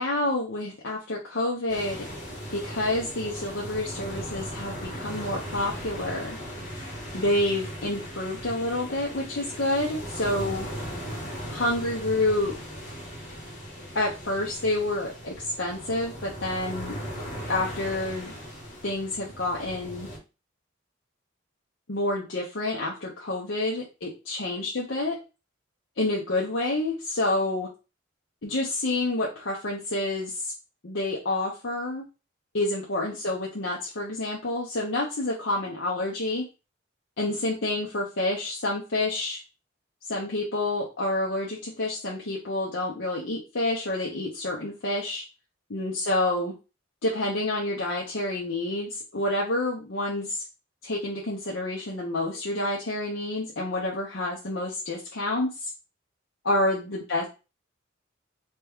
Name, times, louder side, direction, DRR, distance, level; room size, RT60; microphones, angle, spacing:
voice 1, 0.0-2.1 2.5-6.4 7.1-10.7 11.5-12.6 13.9-17.0 17.5-18.3 18.8-20.1 21.9-25.2 26.0-27.7 28.4-30.5 30.8-32.0 32.5-36.5 37.2-39.4 40.1-45.2 45.7-46.6 47.0-50.4 50.8-55.7 56.4-57.3, left 2 dB, 65° left, -4 dB, 0.8 m, -28 dB
sound 1, 1.7-20.2, equal, 35° left, 1.7 m, -38 dB
3.4 x 3.0 x 3.5 m, 0.30 s
head